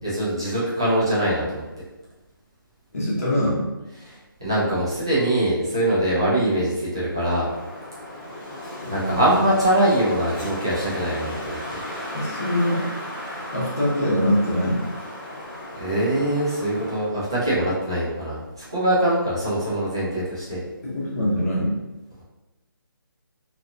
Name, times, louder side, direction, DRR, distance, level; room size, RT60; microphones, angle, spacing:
voice 1, 0.0-1.6 4.0-7.5 8.9-11.6 15.7-20.6, right 1 dB, 10° right, -9 dB, 0.4 m, -23 dB
voice 2, 2.9-3.7 8.8-9.5 12.1-12.9 13.5-14.9 20.8-21.8, equal, 40° left, -6 dB, 0.8 m, -23 dB
Wind, 7.3-17.2, left 1 dB, 20° left, 1.0 m, -35 dB
2.8 x 2.3 x 2.5 m, 1.1 s
hypercardioid pair, 180°, 12 cm